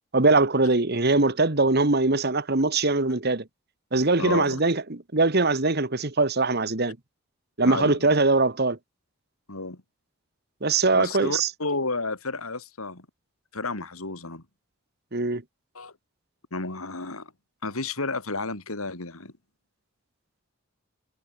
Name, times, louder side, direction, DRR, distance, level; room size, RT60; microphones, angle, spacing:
voice 1, 0.1-3.4 3.9-7.0 7.6-8.8 10.6-11.5 15.1-15.4, right 3 dB, 50° right, 1.6 m, -22 dB
voice 2, 4.2-4.6 7.6-8.1 9.5-9.8 10.9-13.1 13.5-14.4 15.7-15.9 16.5-17.3 17.6-19.3, left 3 dB, 85° left, 3.4 m, -31 dB
head